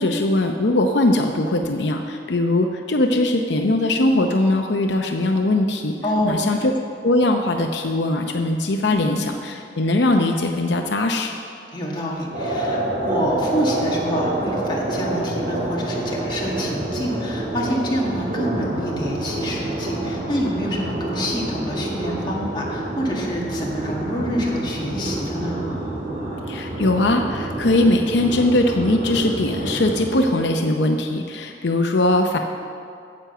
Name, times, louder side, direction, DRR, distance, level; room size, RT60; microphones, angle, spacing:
voice 1, 0.0-5.9 6.2-6.7 7.0-11.3 26.5-32.4, left 2 dB, 80° left, 4 dB, 0.7 m, -20 dB
voice 2, 6.0-6.6 8.9-9.1 11.7-25.6, equal, 25° left, -4 dB, 1.9 m, -27 dB
sound 1, 12.3-30.2, right 1 dB, 45° right, 2.2 m, -27 dB
9.6 x 7.8 x 6.8 m, 2.4 s
head